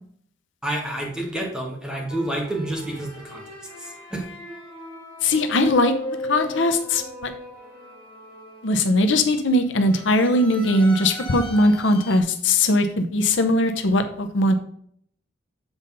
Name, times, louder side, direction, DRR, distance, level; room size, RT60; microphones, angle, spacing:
voice 1, 0.6-3.4 3.8-4.2, right 1 dB, 5° right, -2 dB, 1.6 m, -29 dB
sound 1, 2.1-9.2 9.8-12.2, equal, 25° left, 2.2 m, -37 dB
voice 2, 5.2-5.9 6.3-7.3 8.6-14.5, left 1 dB, 70° left, 7 dB, 0.7 m, -20 dB
7.2 x 4.0 x 5.2 m, 0.64 s
head